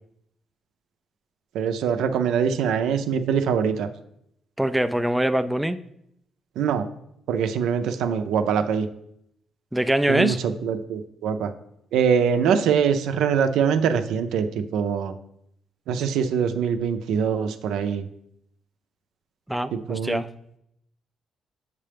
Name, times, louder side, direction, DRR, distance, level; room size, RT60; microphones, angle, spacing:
voice 1, 1.5-3.9 6.6-6.9 7.3-8.9 10.1-11.5 11.9-15.1 15.9-18.1 19.7-20.2, right 7 dB, 85° right, 8 dB, 0.5 m, -23 dB
voice 2, 4.6-5.8 9.7-10.4 19.5-20.3, right 1 dB, 5° right, 9 dB, 0.4 m, -23 dB
7.4 x 6.6 x 3.4 m, 0.76 s
cardioid pair, 90°, 0 cm